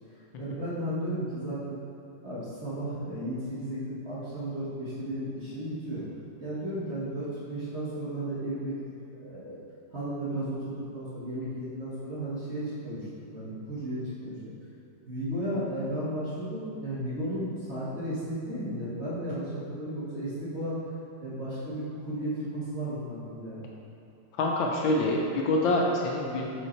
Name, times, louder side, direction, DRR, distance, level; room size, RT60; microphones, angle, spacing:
voice 1, 0.4-1.8 2.2-6.0 6.4-8.8 9.1-9.5 9.9-14.5 15.1-20.8 21.2-23.6, right 1 dB, 40° right, -10 dB, 1.2 m, -34 dB
voice 2, 24.4-26.5, left 2 dB, 75° left, -2 dB, 1.3 m, -26 dB
4.9 x 4.7 x 4.3 m, 2.8 s
omnidirectional pair, 2.3 m